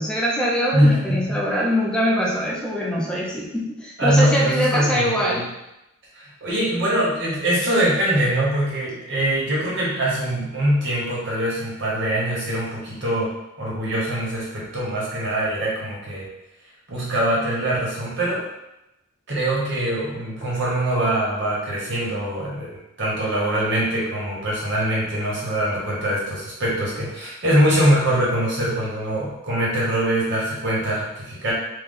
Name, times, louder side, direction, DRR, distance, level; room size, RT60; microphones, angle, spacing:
voice 1, 0.0-5.5, equal, 5° left, -4 dB, 0.6 m, -23 dB
voice 2, 0.7-1.4 4.0-5.4 6.1-13.3 13.6-16.3 16.9-18.4 19.3-22.7 23.0-31.5, right 1 dB, 60° right, -6 dB, 1.3 m, -23 dB
3.2 x 2.3 x 3.8 m, 0.90 s
head